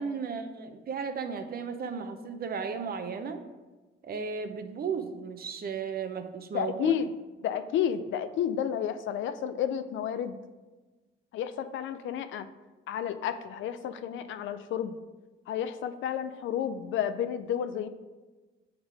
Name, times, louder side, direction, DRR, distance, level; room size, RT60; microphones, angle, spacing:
voice 1, 0.0-3.4 4.0-7.0, right 5 dB, 50° right, 8 dB, 0.7 m, -35 dB
voice 2, 6.5-7.1 7.4-10.4 11.3-12.5 12.9-15.0 15.5-17.9, left 9 dB, 75° left, 11 dB, 0.5 m, -31 dB
7.1 x 3.7 x 4.7 m, 1.2 s
cardioid pair, 90°, 20 cm